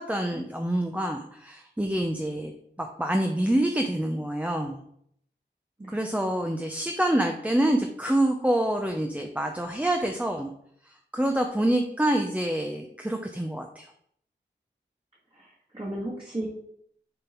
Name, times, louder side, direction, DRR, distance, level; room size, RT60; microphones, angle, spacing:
voice 1, 0.0-2.5 2.8-4.8 5.9-10.5 10.8-13.9, right 1 dB, 5° right, 3 dB, 0.7 m, -26 dB
voice 2, 15.3-16.5, right 1 dB, 30° right, -7 dB, 1.9 m, -35 dB
6.9 x 3.7 x 4.5 m, 0.68 s
wide cardioid pair, 40°, 20 cm